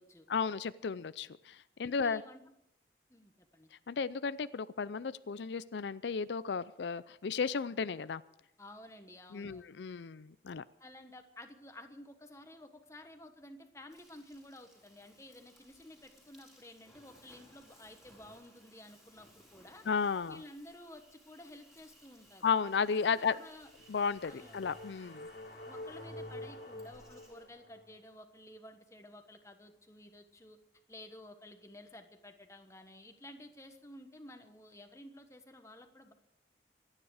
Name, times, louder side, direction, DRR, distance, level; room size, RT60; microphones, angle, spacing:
voice 1, 0.3-2.2 3.9-8.2 9.3-10.6 19.9-20.4 22.4-23.4 23.9-25.3, left 5 dB, 85° left, 16 dB, 0.5 m, -34 dB
voice 2, 1.8-2.4 3.1-3.7 8.6-9.6 10.8-19.8 20.3-22.5 23.1-23.7 24.3-24.6 25.6-30.6 30.9-36.1, left 1 dB, 15° left, 6 dB, 1.4 m, -53 dB
Insect, 13.9-27.5, equal, ahead, 4.3 m, -62 dB
sound 1, 23.7-28.0, left 1 dB, 65° left, 2.4 m, -48 dB
25.5 x 9.9 x 4.9 m, 0.78 s
head